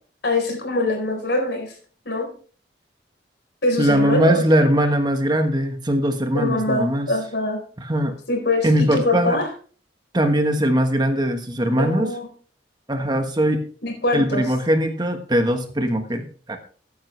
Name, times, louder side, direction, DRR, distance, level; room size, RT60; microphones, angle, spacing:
voice 1, 0.2-1.7 2.0-2.3 3.6-4.4 6.3-7.6 8.3-9.5 11.6-12.3 13.8-14.4, left 2 dB, 70° left, 4 dB, 4.1 m, -23 dB
voice 2, 3.8-7.1 7.8-8.1 8.6-9.4 10.1-12.1 12.9-13.6 14.1-16.2 16.5-16.6, right 1 dB, 25° right, 6 dB, 1.3 m, -20 dB
13.5 x 9.3 x 3.2 m, 0.42 s
head